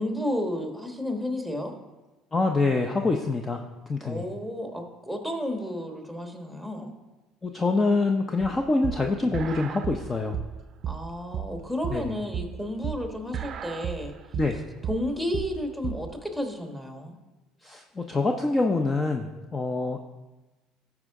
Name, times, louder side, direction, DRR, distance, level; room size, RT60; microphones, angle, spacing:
voice 1, 0.0-1.7 4.0-6.9 10.8-14.1 14.9-17.1, left 1 dB, 5° left, 3 dB, 1.5 m, -32 dB
voice 2, 2.3-4.2 7.4-10.4 11.9-12.0 14.3-14.6 17.6-20.0, left 3 dB, 25° left, 4 dB, 0.6 m, -25 dB
sound 1, 8.4-16.1, right 10 dB, 50° right, 0.5 m, -34 dB
13.5 x 4.8 x 3.7 m, 1.1 s
supercardioid pair, 85°, 0 cm